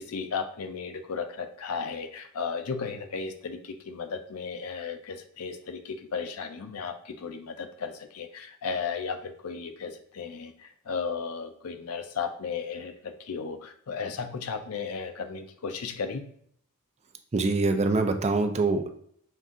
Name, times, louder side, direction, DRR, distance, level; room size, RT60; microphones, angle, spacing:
voice 1, 0.0-16.3, left 5 dB, 90° left, 8 dB, 0.5 m, -35 dB
voice 2, 17.3-18.9, right 3 dB, 30° right, 6 dB, 0.4 m, -24 dB
5.5 x 2.5 x 3.6 m, 0.63 s
head